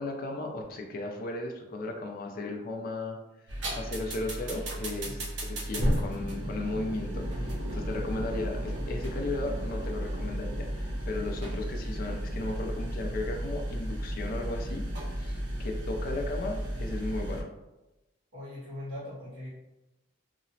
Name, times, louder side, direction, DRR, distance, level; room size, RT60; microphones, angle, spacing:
voice 1, 0.0-3.2 3.5-14.8 15.2-17.5, left 2 dB, 45° left, 2 dB, 0.3 m, -36 dB
sound 1, 3.5-17.4, equal, 55° right, 0.5 m, -33 dB
voice 2, 18.3-19.5, left 1 dB, 75° right, -10 dB, 1.5 m, -40 dB
2.8 x 2.0 x 2.6 m, 1.0 s
head